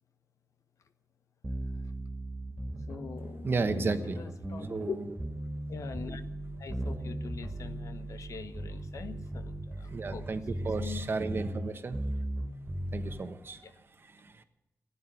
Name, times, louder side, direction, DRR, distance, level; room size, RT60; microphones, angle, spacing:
sound 1, 1.4-13.2, right 1 dB, 20° right, 2.6 m, -37 dB
voice 1, 2.9-5.0 5.7-11.1 13.6-13.7, left 6 dB, 80° left, 10 dB, 1.1 m, -43 dB
voice 2, 3.4-4.2 4.7-5.0 9.9-12.0 12.9-13.7 14.0-14.4, right 4 dB, 45° right, 9 dB, 1.1 m, -33 dB
15.5 x 10.0 x 9.0 m, 0.89 s
wide cardioid pair, 155°, 5 cm